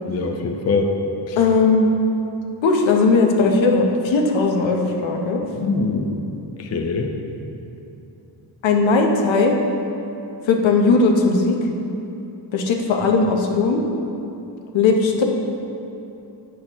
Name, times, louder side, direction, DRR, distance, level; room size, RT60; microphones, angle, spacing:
voice 1, 0.1-0.9 1.3-1.4 5.6-6.2 6.6-7.1, left 3 dB, 35° left, 3 dB, 0.4 m, -23 dB
voice 2, 1.4-1.9 2.6-5.4 8.6-9.5 10.5-11.6 12.5-13.8 14.7-15.3, left 4 dB, 85° left, 2 dB, 0.9 m, -18 dB
8.6 x 6.3 x 3.0 m, 2.9 s
wide cardioid pair, 165°, 45 cm